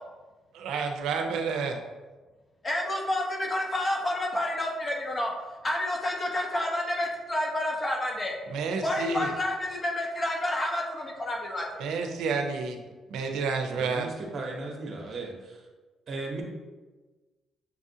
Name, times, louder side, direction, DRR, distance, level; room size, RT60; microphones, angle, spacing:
voice 1, 0.5-1.8 8.5-9.2 11.8-12.8 13.1-14.1, right 4 dB, 85° right, 4 dB, 0.5 m, -30 dB
voice 2, 2.6-5.3 5.6-8.3 8.8-12.0, left 1 dB, 30° left, -1 dB, 1.0 m, -29 dB
voice 3, 13.7-15.7 16.1-16.4, right 2 dB, 50° right, 0 dB, 0.9 m, -37 dB
6.7 x 2.4 x 2.7 m, 1.2 s
cardioid pair, 90°, 0 cm